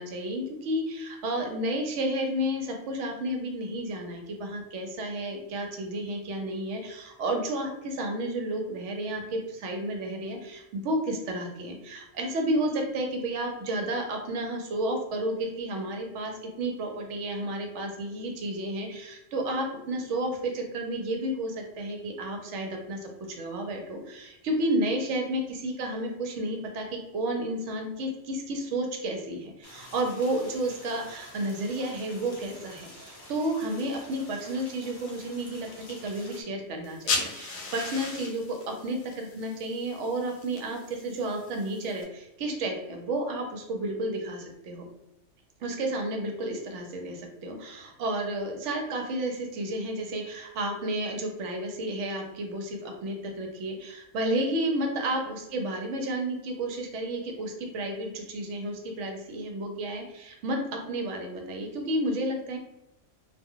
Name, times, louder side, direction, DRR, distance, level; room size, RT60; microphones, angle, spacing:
voice 1, 0.0-16.3 16.6-44.9 45.6-62.6, right 1 dB, 70° right, 2 dB, 0.9 m, -31 dB
sound 1, 29.6-36.4, left 1 dB, 40° left, 0.3 m, -48 dB
sound 2, 36.8-42.0, left 4 dB, 70° left, 0.9 m, -36 dB
2.3 x 2.1 x 3.6 m, 0.90 s
omnidirectional pair, 1.3 m